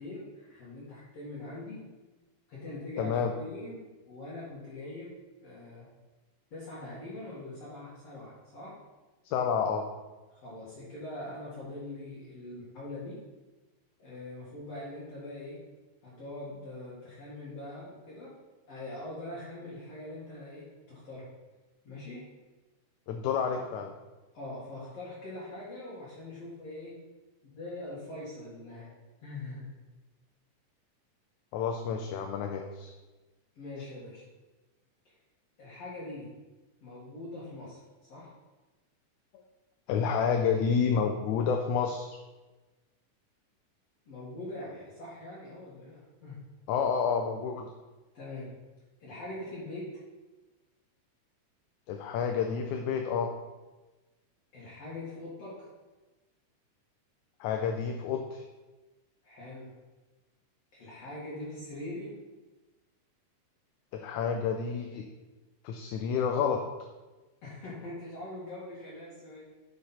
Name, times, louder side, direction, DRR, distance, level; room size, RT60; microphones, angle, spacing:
voice 1, 0.0-1.9 2.5-5.1 5.4-5.9 6.5-8.8 10.3-13.2 14.0-15.6 16.0-18.3 18.7-21.3 21.8-22.3 23.5-23.6 24.3-27.0 27.5-28.9 29.2-29.7 33.6-34.2 35.1-35.2 35.6-36.3 36.8-37.8 38.1-38.3 44.1-46.4 48.1-48.5 49.0-50.0 54.5-55.7 59.2-59.8 60.7-62.2 67.4-69.4, left 2 dB, 55° left, -8 dB, 2.8 m, -42 dB
voice 2, 3.0-3.3 9.3-9.8 23.1-23.9 31.5-32.9 39.9-42.2 46.7-47.7 51.9-53.3 57.4-58.4 63.9-65.1 65.6-66.6, left 6 dB, 75° left, 4 dB, 2.0 m, -29 dB
10.0 x 5.5 x 4.2 m, 1.2 s
omnidirectional pair, 3.6 m